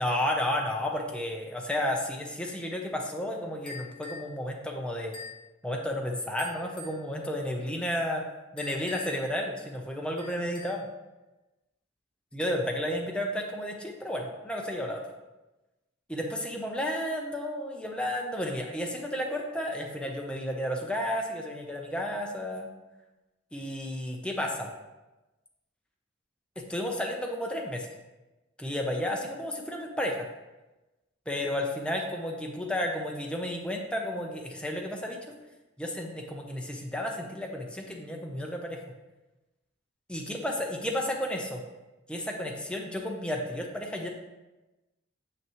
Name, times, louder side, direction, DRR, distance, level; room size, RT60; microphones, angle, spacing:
voice 1, 0.0-5.1 5.6-8.2 8.5-10.8 12.3-15.0 16.1-22.7 23.5-24.7 26.7-27.9 28.6-30.3 31.3-35.2 35.8-38.8 40.1-41.6 42.1-44.1, left 1 dB, 5° left, 1 dB, 0.8 m, -32 dB
sound 1, 3.7-4.3 5.1-5.4 6.4-7.0 8.6-9.3 10.2-10.9, left 3 dB, 25° left, 1.3 m, -44 dB
7.3 x 5.9 x 3.1 m, 1.1 s
head